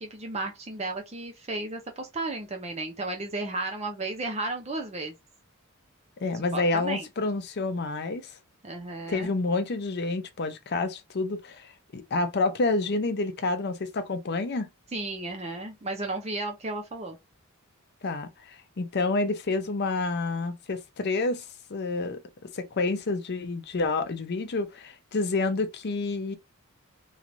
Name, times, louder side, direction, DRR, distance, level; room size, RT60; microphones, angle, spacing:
voice 1, 0.0-5.1 6.5-7.1 8.6-9.3 14.9-17.2, right 2 dB, 30° right, 0.6 m, -33 dB
voice 2, 6.2-8.3 9.1-14.7 18.0-22.2 22.5-26.4, left 3 dB, 50° left, 0.6 m, -29 dB
3.1 x 3.0 x 2.5 m
head